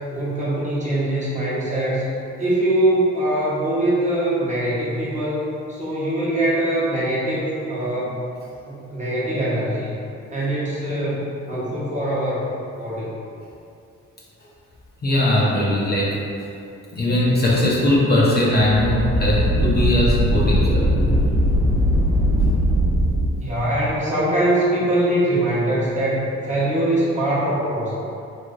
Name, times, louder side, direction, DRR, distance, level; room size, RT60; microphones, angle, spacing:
voice 1, 0.1-2.0 2.4-8.1 8.7-9.9 10.3-11.2 11.5-12.4 12.8-13.2 16.9-17.3 23.4-27.9, right 1 dB, 25° right, -8 dB, 0.9 m, -22 dB
voice 2, 15.0-16.5 16.9-21.2 22.4-22.5, left 1 dB, 35° left, -6 dB, 0.5 m, -20 dB
sound 1, 18.5-23.3, equal, 80° right, 1.0 m, -19 dB
3.1 x 2.7 x 2.5 m, 2.6 s
cardioid pair, 90°, 30 cm